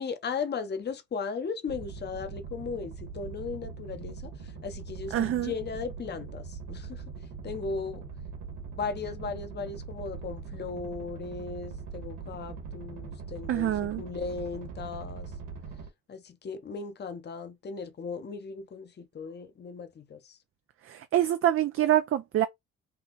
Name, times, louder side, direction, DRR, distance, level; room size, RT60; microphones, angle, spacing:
voice 1, 0.0-7.0 7.4-8.0 8.8-15.3 16.1-20.4, left 5 dB, 35° left, 0.8 m, -37 dB
sound 1, 1.7-15.9, right 5 dB, 90° right, 1.4 m, -41 dB
voice 2, 5.1-5.5 13.5-14.0 20.9-22.5, right 12 dB, 45° right, 0.4 m, -25 dB
3.8 x 2.3 x 3.9 m
cardioid pair, 90°, 30 cm